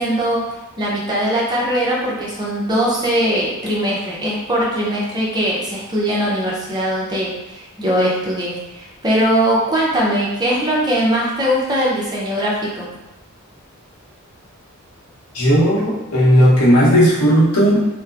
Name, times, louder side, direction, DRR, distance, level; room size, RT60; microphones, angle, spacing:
voice 1, 0.0-12.9, equal, 20° right, -5 dB, 0.6 m, -20 dB
voice 2, 15.3-17.9, equal, 90° left, -6 dB, 0.8 m, -14 dB
2.9 x 2.1 x 2.4 m, 0.96 s
head